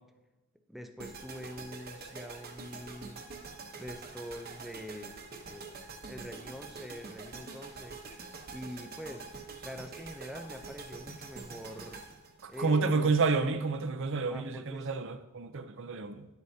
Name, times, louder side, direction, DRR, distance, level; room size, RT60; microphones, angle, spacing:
voice 1, 0.7-3.2 3.8-5.1 5.5-5.7 6.0-8.2 8.5-12.0 12.5-13.1 14.3-14.9, equal, ahead, 6 dB, 0.5 m, -44 dB
sound 1, 1.0-13.2, right 4 dB, 45° right, 1.0 m, -46 dB
voice 2, 12.4-16.3, right 4 dB, 60° right, 9 dB, 0.6 m, -29 dB
10.5 x 8.0 x 2.8 m, 1.0 s
head